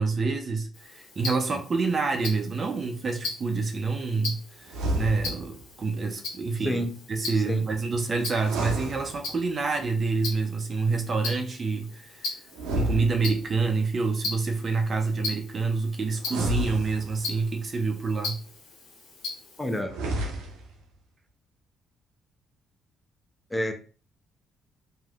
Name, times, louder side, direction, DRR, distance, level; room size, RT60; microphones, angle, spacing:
voice 1, 0.0-6.8 7.1-12.3 12.7-18.4, right 4 dB, 45° right, 0.5 m, -27 dB
Tick-tock, 0.7-19.8, left 3 dB, 85° left, 1.1 m, -39 dB
sound 1, 4.6-5.6 8.3-9.7 12.5-13.7 16.2-17.5 19.8-20.8, equal, 90° right, 0.6 m, -31 dB
voice 2, 7.3-7.7 19.6-20.0 23.5-23.7, equal, 10° left, 0.7 m, -29 dB
3.1 x 2.7 x 2.4 m
supercardioid pair, 60°, 0 cm